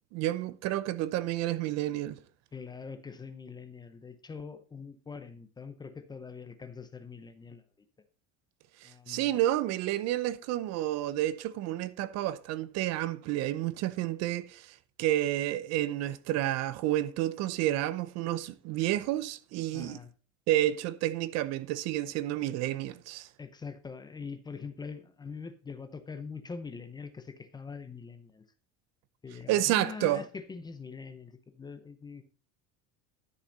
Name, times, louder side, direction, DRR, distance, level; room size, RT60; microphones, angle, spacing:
voice 1, 0.1-2.2 8.8-20.0 20.5-23.3 29.5-30.2, right 14 dB, 55° right, 0.7 m, -30 dB
voice 2, 2.5-7.6 8.8-9.3 19.7-20.1 23.4-28.4 29.2-32.2, left 5 dB, 15° left, 0.7 m, -43 dB
11.5 x 6.8 x 3.9 m
cardioid pair, 160°, 32 cm